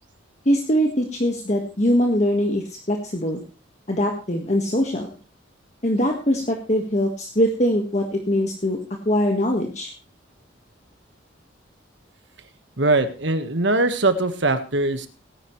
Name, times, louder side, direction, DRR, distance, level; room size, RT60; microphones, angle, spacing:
voice 1, 0.5-3.4 3.9-5.1 5.8-8.8 9.1-9.9, equal, 35° left, 2 dB, 1.6 m, -22 dB
voice 2, 12.8-15.1, right 2 dB, 70° right, 9 dB, 1.5 m, -21 dB
17.5 x 10.5 x 3.2 m, 0.33 s
head